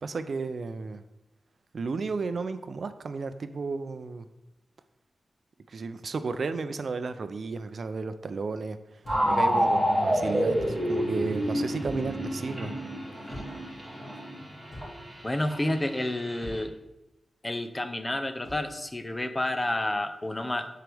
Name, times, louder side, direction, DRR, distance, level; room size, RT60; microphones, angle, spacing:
voice 1, 0.0-1.0 1.7-4.3 5.7-8.8 9.2-12.7, right 4 dB, 65° right, 10 dB, 0.4 m, -33 dB
sound 1, 9.0-9.4 10.5-10.9 11.8-12.2 13.3-13.7 14.7-15.1 16.4-16.8 18.4-18.7, equal, 70° left, 2.5 m, -44 dB
sound 2, 9.1-16.6, equal, 10° right, 2.2 m, -29 dB
voice 2, 15.2-16.7 17.4-20.7, left 1 dB, 20° left, 9 dB, 0.6 m, -30 dB
12.0 x 4.7 x 3.4 m, 0.95 s
wide cardioid pair, 110°, 0 cm